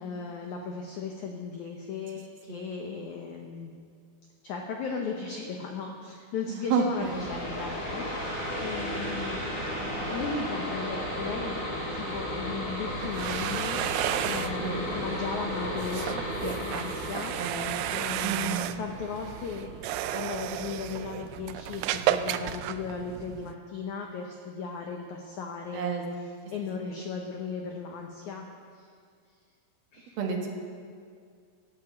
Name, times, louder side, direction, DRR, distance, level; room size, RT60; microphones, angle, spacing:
voice 1, 0.0-3.7 4.4-9.4 10.1-11.6 11.9-18.4 18.8-25.9 26.5-28.4 28.7-28.9 29.9-30.2, left 5 dB, 90° left, 2 dB, 1.7 m, -36 dB
voice 2, 6.5-7.2 14.6-14.8 17.3-17.7 18.2-18.7 25.7-26.0 26.8-27.0 30.2-30.5, right 5 dB, 65° right, 1 dB, 3.2 m, -30 dB
sound 1, 6.9-20.2, equal, 30° left, 4.6 m, -34 dB
sound 2, 12.9-23.5, right 12 dB, 80° right, 2.3 m, -33 dB
14.5 x 9.6 x 8.1 m, 2.2 s
omnidirectional pair, 4.9 m